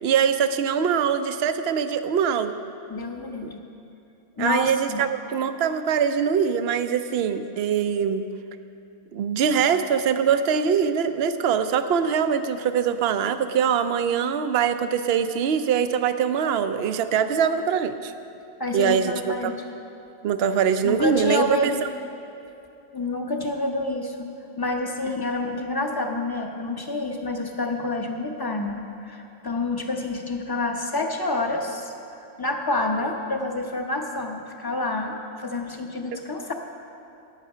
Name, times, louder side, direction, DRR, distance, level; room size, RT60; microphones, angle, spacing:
voice 1, 0.0-2.5 4.4-8.3 9.1-18.1 18.7-19.5 20.2-21.4 36.1-36.2, right 7 dB, 60° right, 10 dB, 0.7 m, -23 dB
voice 2, 2.9-3.6 4.4-5.0 18.6-19.5 20.8-21.9 22.9-24.3 24.6-36.5, left 2 dB, 20° left, 3 dB, 0.8 m, -28 dB
14.0 x 9.4 x 5.6 m, 2.7 s
omnidirectional pair, 1.4 m